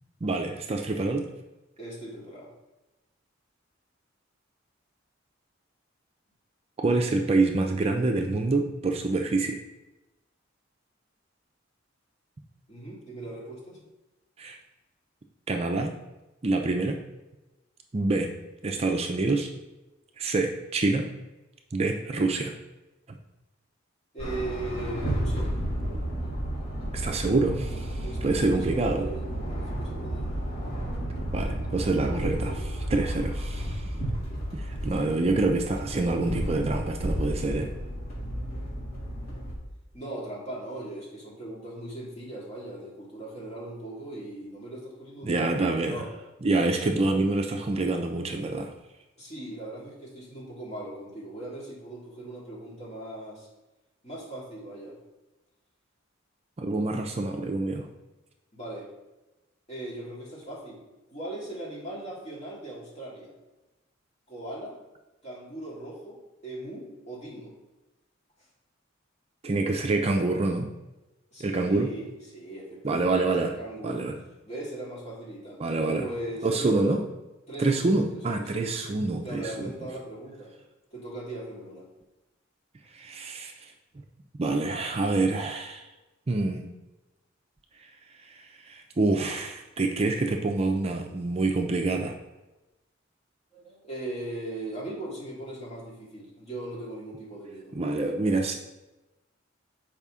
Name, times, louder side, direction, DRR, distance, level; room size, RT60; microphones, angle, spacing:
voice 1, 0.2-1.3 6.8-9.6 14.4-14.6 15.5-15.9 16.4-17.0 17.9-18.3 18.6-19.5 20.2-21.1 21.7-22.5 23.1-23.2 26.9-29.1 31.3-33.8 34.5-37.7 45.2-46.1 46.4-48.7 56.6-57.9 69.4-70.7 71.4-71.9 72.8-73.5 73.8-74.2 75.6-76.1 76.4-77.0 77.6-79.5 82.9-83.7 84.4-85.9 86.3-86.7 88.3-92.2 97.7-98.5, right 2 dB, 30° right, 3 dB, 0.5 m, -26 dB
voice 2, 1.8-2.5 12.7-13.8 24.1-25.5 28.0-30.2 39.9-46.1 49.2-53.5 54.0-55.0 58.5-58.9 59.7-60.8 61.1-63.3 64.3-64.8 65.2-67.5 71.3-74.1 74.4-75.6 76.0-77.0 77.5-78.7 79.2-80.5 80.9-81.9 93.5-97.8, right 1 dB, 35° left, -5 dB, 2.1 m, -39 dB
sound 1, 24.2-39.5, right 1 dB, 50° left, 2.4 m, -32 dB
6.9 x 4.9 x 3.6 m, 1.0 s
head